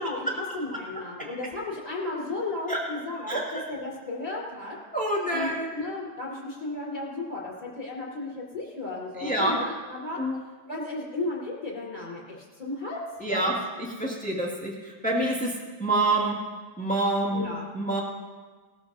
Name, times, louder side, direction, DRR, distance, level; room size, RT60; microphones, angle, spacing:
voice 1, 0.0-4.8 5.3-10.2 10.7-13.0 13.3-13.5 17.3-17.6, left 2 dB, 20° left, -5 dB, 4.1 m, -34 dB
voice 2, 0.9-1.3 2.7-2.8 3.3-3.6 4.9-5.8 9.2-9.6 10.2-10.4 13.2-16.4 16.8-17.4 17.7-18.0, right 2 dB, 5° left, -3 dB, 1.8 m, -27 dB
19.5 x 13.0 x 2.7 m, 1.4 s
omnidirectional pair, 2.2 m